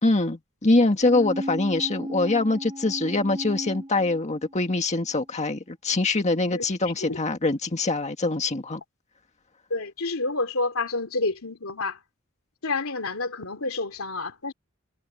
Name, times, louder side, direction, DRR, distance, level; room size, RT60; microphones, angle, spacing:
voice 1, 0.0-8.8, left 2 dB, 35° left, 1.8 m, -24 dB
sound 1, 1.0-4.8 5.1-5.2, equal, 25° right, 5.1 m, -35 dB
voice 2, 6.5-7.2 9.7-12.0 12.6-14.5, left 3 dB, 90° left, 2.8 m, -29 dB
head